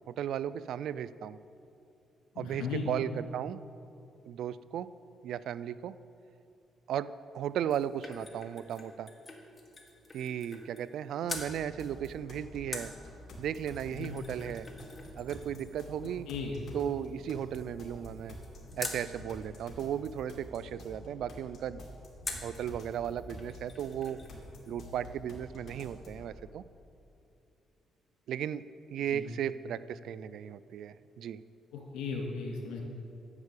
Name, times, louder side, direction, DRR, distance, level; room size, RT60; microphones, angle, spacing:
voice 1, 0.1-1.4 2.4-3.6 4.2-4.9 5.2-5.9 6.9-7.1 7.3-9.1 10.1-12.9 13.4-14.7 15.2-16.3 16.7-18.4 18.8-21.8 22.4-24.2 24.7-26.6 28.3-28.6 28.9-31.4, right 9 dB, 75° right, 16 dB, 0.3 m, -35 dB
voice 2, 2.3-2.9 13.9-14.1 16.3-16.5 29.1-29.3 31.9-32.8, left 5 dB, 90° left, 0 dB, 2.2 m, -36 dB
sound 1, 7.4-11.0 11.3-11.5 12.7-19.1 22.2-22.6 23.1-23.2 23.4-24.4 24.7-24.8, left 2 dB, 25° left, 1.6 m, -45 dB
sound 2, 11.3-26.3, left 1 dB, 55° left, 2.4 m, -48 dB
9.7 x 7.4 x 8.2 m, 2.7 s
cardioid pair, 90°, 0 cm